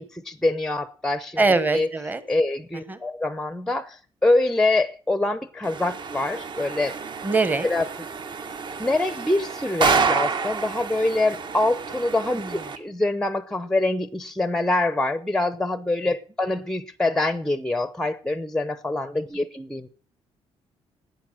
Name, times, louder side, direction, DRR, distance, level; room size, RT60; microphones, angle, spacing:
voice 1, 0.0-1.4 1.7-1.9 2.3-7.0 7.6-7.8 8.8-19.9, left 2 dB, 5° left, 0.6 m, -25 dB
voice 2, 1.4-2.2 2.9-3.0 7.2-7.7 12.4-12.5, right 3 dB, 15° right, 1.2 m, -22 dB
sound 1, 5.6-12.8, right 5 dB, 40° right, 1.2 m, -29 dB
11.0 x 9.2 x 7.5 m
cardioid pair, 135°, 11 cm